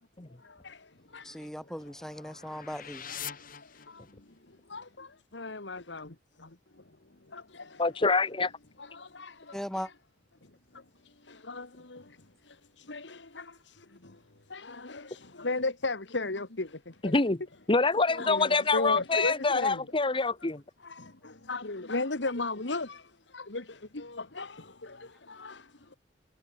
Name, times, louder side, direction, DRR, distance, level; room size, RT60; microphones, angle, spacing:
voice 1, 0.4-1.5 2.6-2.8 3.1-6.8 7.3-7.8 8.8-9.9 10.7-10.8 11.2-12.2 12.4-14.2 14.5-17.1 18.1-19.8 20.1-20.2 20.8-25.9, left 3 dB, 75° left, 1.9 m, -37 dB
sound 1, 1.0-4.4, left 9 dB, 50° left, 6.2 m, -45 dB
voice 2, 1.2-3.0 9.5-9.9, equal, 5° left, 1.0 m, -38 dB
voice 3, 7.8-8.5 17.0-17.4 17.7-20.6, left 3 dB, 30° left, 1.1 m, -26 dB
head